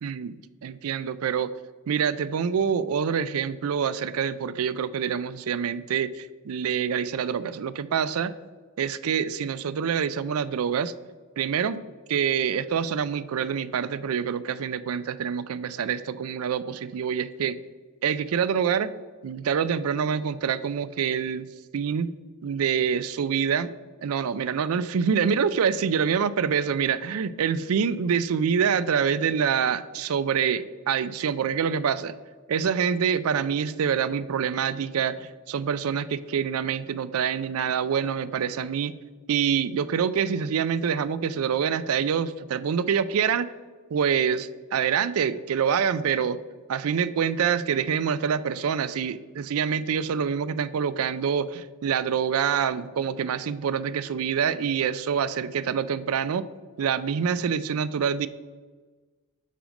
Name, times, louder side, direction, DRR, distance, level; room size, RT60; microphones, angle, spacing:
voice 1, 0.0-1.5 1.9-8.3 8.8-10.9 11.4-17.6 18.0-18.9 19.2-21.5 21.7-22.1 22.4-23.7 24.0-32.1 32.5-38.9 39.3-43.5 43.9-46.4 46.7-56.5 56.8-58.3, right 7 dB, 75° right, 15 dB, 0.4 m, -26 dB
7.6 x 5.1 x 5.2 m, 1.4 s
head